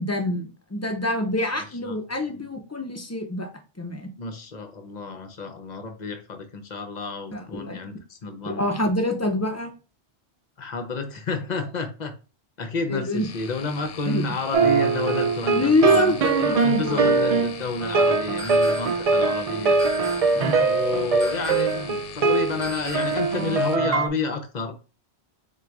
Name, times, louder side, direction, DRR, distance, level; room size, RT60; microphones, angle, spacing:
voice 1, 0.0-3.5 3.8-4.1 7.3-7.8 8.4-9.7 12.9-13.3 14.0-14.2 15.5-17.3 20.3-20.7, left 2 dB, 25° left, 3 dB, 0.3 m, -26 dB
voice 2, 4.2-8.6 10.6-12.1 12.6-19.8 20.7-24.8, left 3 dB, 45° left, 7 dB, 0.7 m, -30 dB
sound 1, 13.1-23.8, left 8 dB, 80° left, 0.9 m, -41 dB
sound 2, 14.5-24.1, right 4 dB, 70° right, 0.3 m, -22 dB
sound 3, 18.4-19.1 19.8-20.5 21.2-21.9 22.6-23.3, right 1 dB, 5° right, 0.8 m, -39 dB
3.8 x 2.3 x 4.5 m, 0.32 s
omnidirectional pair, 1.2 m